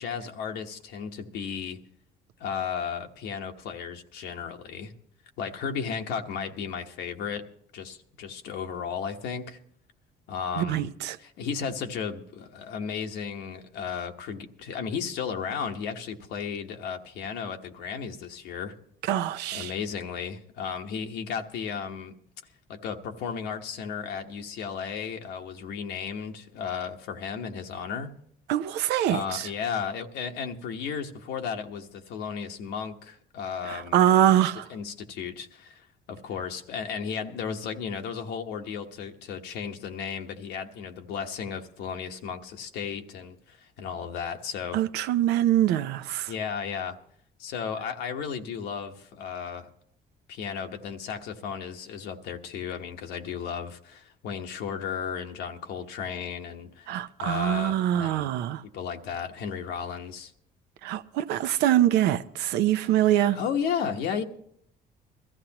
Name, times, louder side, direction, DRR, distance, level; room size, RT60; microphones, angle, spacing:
voice 1, 0.0-1.8 2.4-4.9 5.4-7.4 7.7-9.6 10.3-10.9 11.2-18.7 19.5-22.1 22.7-28.1 29.1-34.1 34.7-44.8 46.3-47.0 47.4-49.7 50.3-58.3 58.7-60.3 63.1-64.2, left 7 dB, 85° left, 1.2 m, -34 dB
voice 2, 10.6-11.2 19.1-19.7 28.5-29.5 33.7-34.7 44.7-46.3 56.9-58.6 60.8-63.4, right 11 dB, 90° right, 0.7 m, -24 dB
21.5 x 14.0 x 2.9 m
cardioid pair, 110°, 17 cm